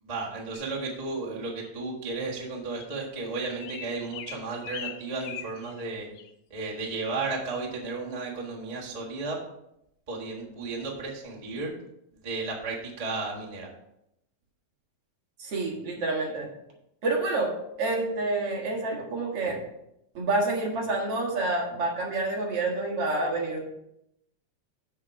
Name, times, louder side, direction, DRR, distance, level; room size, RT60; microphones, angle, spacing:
voice 1, 0.0-6.1 6.5-9.4 10.1-11.7 12.2-13.7, right 3 dB, 30° right, -3 dB, 0.6 m, -34 dB
sound 1, 0.5-0.7 1.6-1.7 2.3-2.5 2.8-3.0 3.6-5.8 6.2-6.3 6.7-6.9 7.2-7.4, left 10 dB, 85° left, 2.2 m, -42 dB
voice 2, 15.4-16.5 17.0-19.6 20.1-23.6, right 2 dB, 55° right, -1 dB, 2.4 m, -28 dB
7.5 x 6.6 x 4.7 m, 0.80 s
omnidirectional pair, 3.6 m